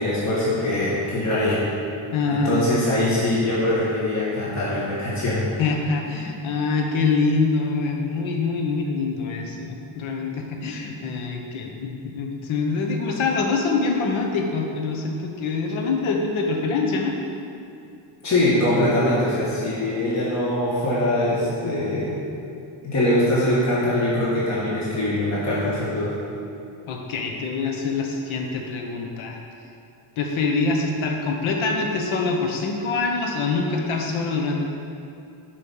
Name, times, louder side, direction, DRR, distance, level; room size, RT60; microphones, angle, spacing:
voice 1, 0.0-1.6 2.3-5.5 18.2-22.2 22.8-26.2, left 1 dB, 35° left, -8 dB, 1.6 m, -22 dB
voice 2, 2.1-2.6 5.6-17.1 26.9-29.4 30.2-34.6, left 4 dB, 70° left, 1 dB, 1.1 m, -25 dB
11.5 x 5.2 x 5.5 m, 2.6 s
wide cardioid pair, 175°, 49 cm